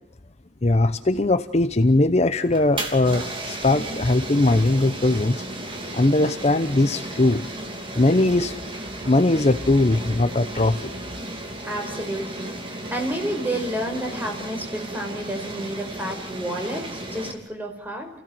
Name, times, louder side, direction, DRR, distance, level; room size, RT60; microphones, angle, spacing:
voice 1, 0.6-5.4 5.9-7.4 7.9-8.5 9.0-10.9, left 2 dB, 35° left, 10 dB, 0.8 m, -20 dB
sound 1, 2.4-17.3, right 1 dB, 30° right, 3.2 m, -34 dB
voice 2, 11.6-18.1, right 1 dB, 10° right, 3 dB, 4.9 m, -30 dB
28.5 x 16.5 x 7.7 m, 0.86 s
head